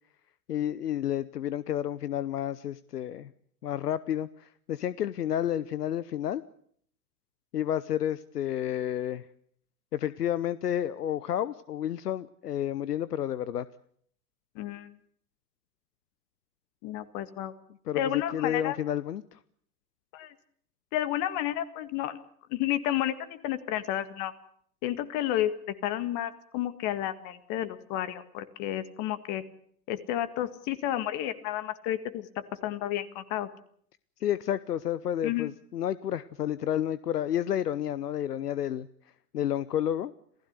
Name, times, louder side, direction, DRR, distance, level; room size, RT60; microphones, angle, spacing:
voice 1, 0.5-3.3 3.6-6.4 7.5-9.3 9.9-13.7 17.9-19.4 34.2-38.9 39.3-40.1, left 10 dB, 75° left, 17 dB, 0.9 m, -30 dB
voice 2, 14.6-14.9 16.8-17.5 17.9-18.8 20.1-20.3 20.9-22.2 22.5-24.3 24.8-25.6 25.8-29.4 29.9-33.5 35.2-35.5, left 12 dB, 40° left, 12 dB, 1.8 m, -31 dB
27.5 x 15.5 x 8.1 m, 0.64 s
hypercardioid pair, 110°, 47 cm